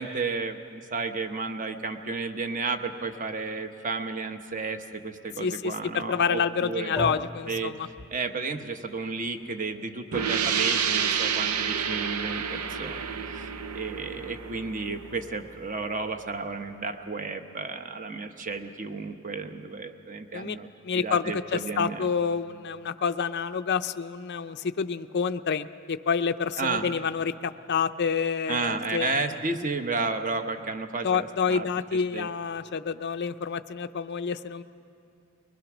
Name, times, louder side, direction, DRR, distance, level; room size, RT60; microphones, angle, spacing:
voice 1, 0.0-7.0 7.5-7.7 8.1-20.7 20.9-22.1 26.6-26.9 28.5-31.7 32.1-32.3, right 4 dB, 35° right, 6 dB, 0.9 m, -32 dB
voice 2, 5.4-7.9 20.3-20.6 20.8-29.3 31.0-34.6, left 6 dB, 50° left, 9 dB, 0.5 m, -28 dB
sound 1, 6.9-15.2, equal, 10° right, 0.5 m, -44 dB
sound 2, 10.1-15.6, right 7 dB, 85° right, 0.7 m, -29 dB
22.5 x 20.0 x 6.1 m, 2.8 s
head